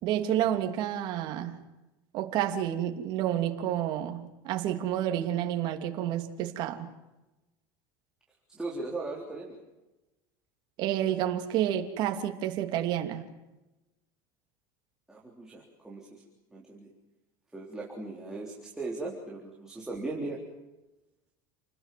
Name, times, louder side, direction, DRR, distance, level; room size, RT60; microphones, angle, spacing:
voice 1, 0.0-1.6 2.1-6.9 10.8-13.2, right 11 dB, 45° right, 5 dB, 2.9 m, -30 dB
voice 2, 8.5-9.6 15.1-16.2 16.5-16.9 17.5-20.4, right 2 dB, 5° right, -3 dB, 3.8 m, -38 dB
29.5 x 20.0 x 7.7 m, 1.0 s
cardioid pair, 170°, 11 cm